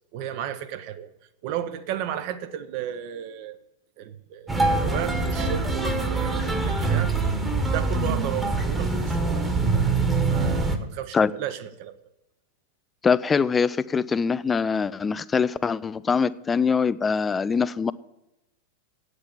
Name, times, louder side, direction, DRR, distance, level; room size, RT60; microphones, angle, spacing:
voice 1, 0.1-1.1 1.4-3.6 4.0-7.1 7.7-9.9 10.3-12.0, right 10 dB, 45° right, 11 dB, 0.8 m, -34 dB
sound 1, 4.5-10.8, right 3 dB, 10° right, 1.2 m, -24 dB
voice 2, 13.0-17.9, left 5 dB, 15° left, 17 dB, 0.4 m, -23 dB
8.7 x 8.1 x 7.1 m, 0.92 s
figure-of-eight pair, 90°, 0 cm